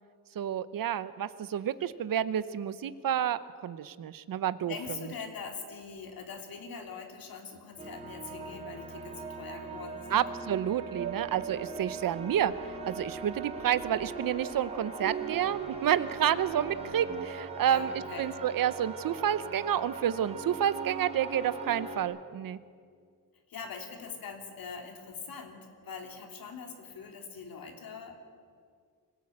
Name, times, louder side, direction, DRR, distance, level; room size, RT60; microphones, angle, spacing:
voice 1, 0.3-4.7 10.1-22.6, right 10 dB, 70° right, 15 dB, 0.9 m, -30 dB
voice 2, 4.6-10.3 17.6-18.4 23.5-28.2, left 5 dB, 75° left, 4 dB, 3.3 m, -43 dB
sound 1, 7.8-22.0, right 3 dB, 20° right, 3.2 m, -41 dB
sound 2, 11.0-17.3, right 10 dB, 40° right, 0.9 m, -42 dB
25.0 x 17.0 x 8.7 m, 2.1 s
wide cardioid pair, 160°, 35 cm